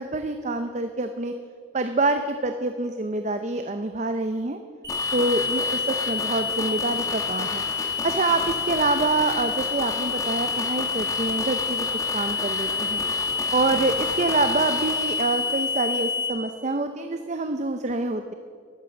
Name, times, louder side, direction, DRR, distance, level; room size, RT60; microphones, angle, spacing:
voice 1, 0.0-1.3 1.7-4.6 5.1-7.7 8.0-13.0 13.5-18.3, right 3 dB, 40° right, 7 dB, 0.6 m, -26 dB
sound 1, 4.8-16.3, left 5 dB, 20° right, 4.2 m, -28 dB
sound 2, 4.9-15.8 16.1-16.2, left 2 dB, 20° left, 1.7 m, -35 dB
13.0 x 11.5 x 7.1 m, 2.1 s
head